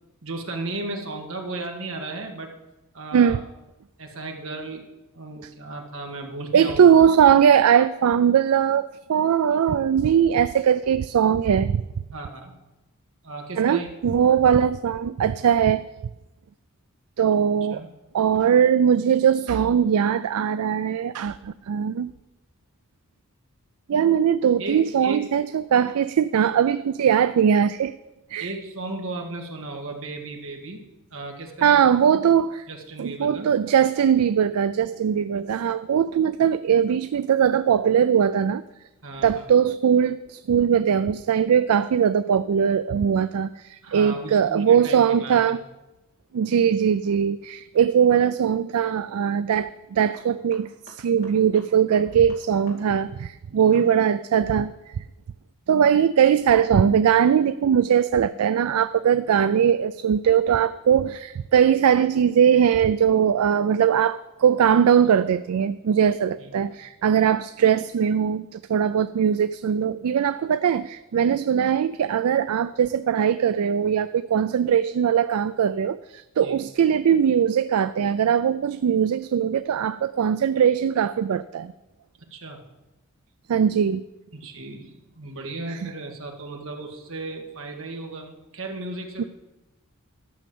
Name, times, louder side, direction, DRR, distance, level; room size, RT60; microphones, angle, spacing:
voice 1, 0.2-2.5 2.9-3.4 4.0-6.9 12.1-12.5 13.2-13.9 17.7-17.9 24.6-25.3 28.4-30.8 31.1-32.0 32.3-32.4 32.7-33.5 39.0-39.5 43.8-45.6 53.5-53.8 66.4-66.7 76.4-76.6 82.3-82.6 84.3-89.2, right 2 dB, 60° right, 2 dB, 1.9 m, -35 dB
voice 2, 6.5-11.8 13.6-15.9 17.2-17.8 18.1-22.1 23.9-27.9 28.3-28.5 31.6-32.6 33.0-38.6 39.2-45.6 46.3-54.9 55.7-81.7 83.5-84.0 85.7-85.9 89.2-89.3, right 8 dB, 80° right, 13 dB, 0.4 m, -20 dB
sound 1, 47.7-48.1 50.1-52.8 53.1-53.2 53.7-53.9, left 2 dB, 50° left, 2.6 m, -49 dB
12.0 x 6.3 x 7.7 m, 1.0 s
head